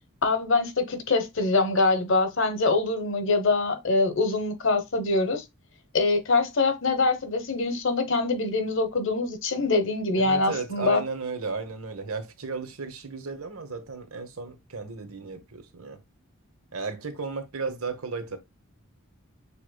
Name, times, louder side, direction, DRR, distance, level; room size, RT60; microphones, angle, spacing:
voice 1, 0.2-5.4 5.9-11.0, left 3 dB, 60° left, 1.0 m, -24 dB
voice 2, 10.1-16.0 16.7-18.4, right 4 dB, 80° right, 1.2 m, -34 dB
6.9 x 3.2 x 2.2 m
head